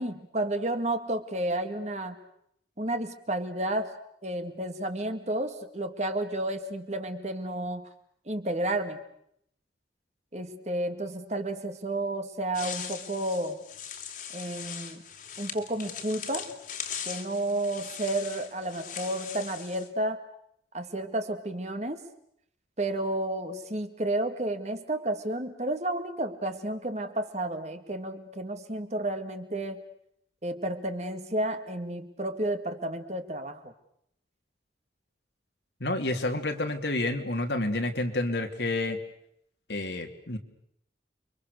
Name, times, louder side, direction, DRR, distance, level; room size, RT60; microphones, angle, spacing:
voice 1, 0.0-2.2 2.8-4.0 4.2-7.9 8.3-9.0 10.3-13.6 14.3-15.0 15.4-16.5 17.1-20.2 20.7-22.0 22.8-29.8 30.4-33.7, right 1 dB, 40° right, 8 dB, 2.1 m, -31 dB
sound 1, 12.5-19.9, left 8 dB, 45° left, 2.7 m, -40 dB
voice 2, 35.8-39.0 39.7-40.4, left 2 dB, 70° left, 5 dB, 2.7 m, -29 dB
30.0 x 24.0 x 6.7 m, 0.71 s
head